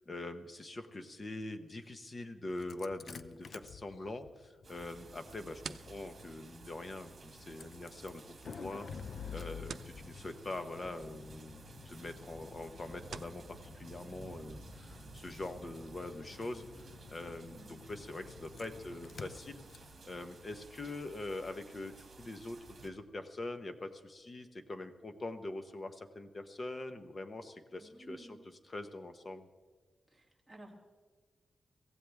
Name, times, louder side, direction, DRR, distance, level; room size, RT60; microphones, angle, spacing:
voice 1, 0.0-19.6 20.0-29.5, left 2 dB, 30° left, 8 dB, 1.0 m, -44 dB
Engine starting, 2.5-21.4, left 6 dB, 55° left, 0.6 m, -51 dB
sound 1, 4.6-22.9, right 4 dB, 40° right, 2.2 m, -55 dB
sound 2, 5.1-13.4, right 6 dB, 70° right, 0.6 m, -53 dB
voice 2, 27.8-28.4 30.1-30.8, right 1 dB, ahead, -3 dB, 2.7 m, -53 dB
23.5 x 16.0 x 3.5 m, 1.4 s
wide cardioid pair, 165°, 0 cm